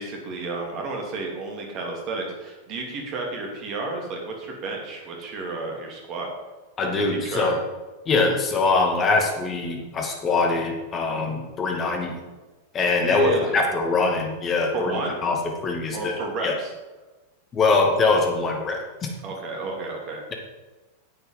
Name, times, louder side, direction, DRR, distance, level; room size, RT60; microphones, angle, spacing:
voice 1, 0.0-6.3 6.9-7.5 13.0-13.6 14.7-15.2 15.9-16.7 19.2-20.2, right 3 dB, 35° right, 0 dB, 3.0 m, -32 dB
voice 2, 6.8-7.6 8.1-12.2 12.7-15.4 15.6-16.1 16.4-16.5 17.5-18.8, left 3 dB, 25° left, 2 dB, 2.3 m, -23 dB
10.5 x 8.2 x 5.5 m, 1.2 s
figure-of-eight pair, 90°, 0 cm